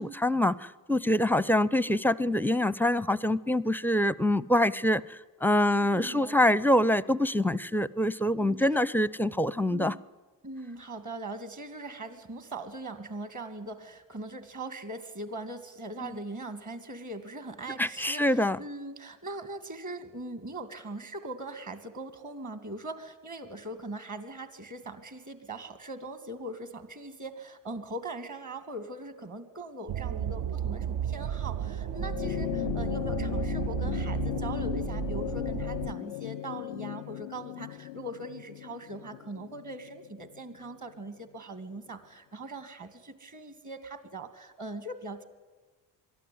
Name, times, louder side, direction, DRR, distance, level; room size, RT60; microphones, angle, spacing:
voice 1, 0.0-9.9 16.0-16.1 17.8-18.6, left 1 dB, 5° left, 21 dB, 0.6 m, -25 dB
voice 2, 5.7-6.6 8.4-8.9 9.7-10.0 10.4-45.2, right 2 dB, 40° right, 10 dB, 2.6 m, -41 dB
distant music festival, 29.9-35.9, right 9 dB, 55° right, 0.6 m, -33 dB
sound 1, 31.9-40.6 41.8-41.9, left 15 dB, 90° left, 0.6 m, -36 dB
22.5 x 13.0 x 9.6 m, 1.3 s
hypercardioid pair, 45°, 47 cm